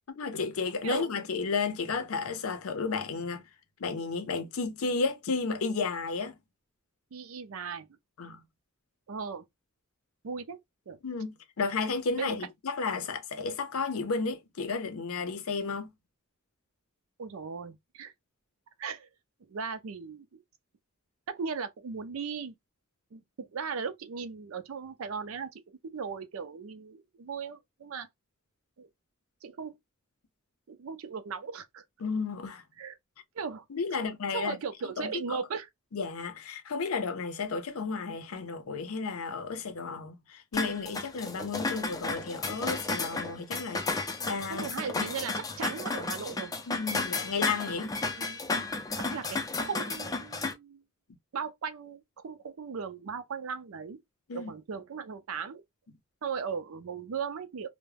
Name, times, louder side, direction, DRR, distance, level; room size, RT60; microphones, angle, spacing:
voice 1, 0.1-3.4 3.8-6.4 8.2-8.4 11.0-15.9 32.0-32.6 33.7-34.6 35.0-35.4 35.9-45.1 46.7-48.0 54.3-54.5, left 4 dB, 80° left, 0.5 m, -33 dB
voice 2, 7.1-7.9 9.1-9.4 10.2-10.6 10.9-11.0 12.2-12.3 12.9-13.1 17.2-18.1 18.8-19.1 19.5-20.4 21.3-22.5 23.1-28.1 28.8-28.9 29.4-29.7 30.7-31.8 32.8-33.0 33.4-33.6 34.3-35.7 44.5-46.5 48.2-48.4 48.9-50.8 51.3-54.0 54.3-55.6 56.2-57.7, right 6 dB, 75° right, 0.4 m, -37 dB
sound 1, 40.5-50.5, left 3 dB, 15° left, 0.4 m, -33 dB
2.2 x 2.1 x 3.2 m
head